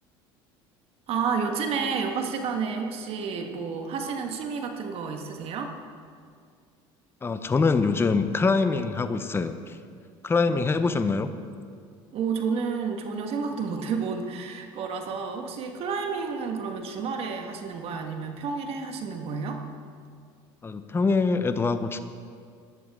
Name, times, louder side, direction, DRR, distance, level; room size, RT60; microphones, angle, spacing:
voice 1, 1.1-5.7 12.1-19.6, right 5 dB, 55° right, 4 dB, 1.6 m, -30 dB
voice 2, 7.2-9.8 10.2-11.3 20.6-22.0, left 4 dB, 20° left, 10 dB, 0.7 m, -24 dB
16.5 x 11.0 x 3.7 m, 2.2 s
supercardioid pair, 95°, 12 cm